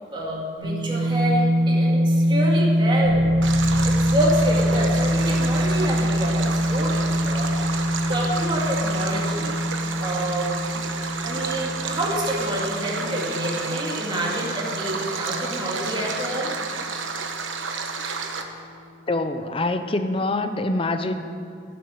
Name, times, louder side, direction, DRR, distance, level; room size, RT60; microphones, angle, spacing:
voice 1, 0.1-3.3 3.8-9.6 10.0-10.5 11.2-16.5, right 1 dB, 25° right, -4 dB, 2.3 m, -28 dB
sound 1, 0.6-16.5, equal, 55° left, 3.6 m, -24 dB
Bass guitar, 3.0-12.7, equal, 75° left, 2.5 m, -38 dB
Stream, 3.4-18.4, right 5 dB, 75° right, 1.0 m, -31 dB
voice 2, 19.1-21.1, left 2 dB, 25° left, 9 dB, 0.6 m, -25 dB
11.5 x 7.8 x 9.6 m, 2.4 s
head